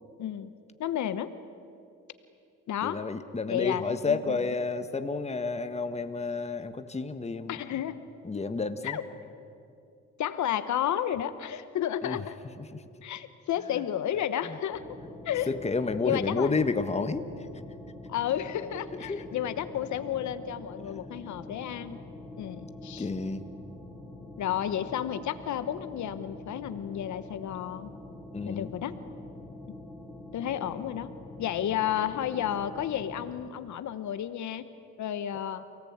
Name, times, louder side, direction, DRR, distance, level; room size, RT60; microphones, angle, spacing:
voice 1, 0.2-0.5 0.8-1.3 2.7-3.0 3.5-4.5 7.5-8.0 8.8-9.0 10.2-12.4 13.0-14.8 15.2-15.5 16.0-16.5 18.1-22.0 22.4-23.1 24.4-27.9 28.5-29.0 30.3-31.1 31.4-34.6 35.0-35.6, left 10 dB, 70° left, 12 dB, 1.1 m, -32 dB
voice 2, 2.8-7.6 8.2-9.0 12.0-12.2 12.6-12.8 14.5-14.6 15.5-17.3 19.1-19.2 23.0-23.5 28.3-28.7, left 4 dB, 20° left, 9 dB, 1.4 m, -30 dB
sound 1, 14.7-33.3, left 2 dB, ahead, 4.0 m, -45 dB
29.0 x 18.0 x 8.7 m, 2.6 s
cardioid pair, 90°, 30 cm